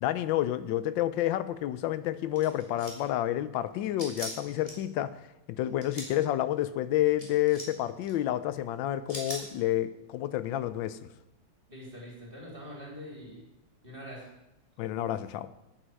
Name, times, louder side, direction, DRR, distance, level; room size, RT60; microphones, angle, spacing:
voice 1, 0.0-5.2 5.5-11.0 14.8-15.5, left 13 dB, 75° left, 15 dB, 1.2 m, -29 dB
sound 1, 2.4-3.1 4.0-4.7 5.7-6.1 7.2-7.7 8.0-8.1 9.1-9.4, equal, 15° left, 2.5 m, -40 dB
voice 2, 11.7-13.4 13.8-14.3, equal, 25° right, -3 dB, 3.3 m, -44 dB
9.0 x 8.7 x 6.4 m, 0.91 s
omnidirectional pair, 2.2 m